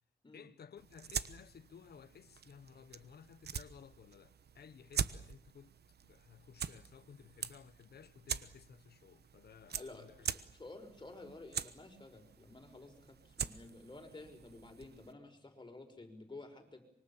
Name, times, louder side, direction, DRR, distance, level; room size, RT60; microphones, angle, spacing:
voice 1, 0.3-5.8 6.0-10.3, left 7 dB, 80° left, 1.2 m, -57 dB
sound 1, 0.8-15.1, right 7 dB, 85° right, 1.1 m, -44 dB
voice 2, 9.7-16.8, left 2 dB, 30° left, 5.9 m, -52 dB
25.5 x 24.0 x 7.3 m
wide cardioid pair, 105°, 16 cm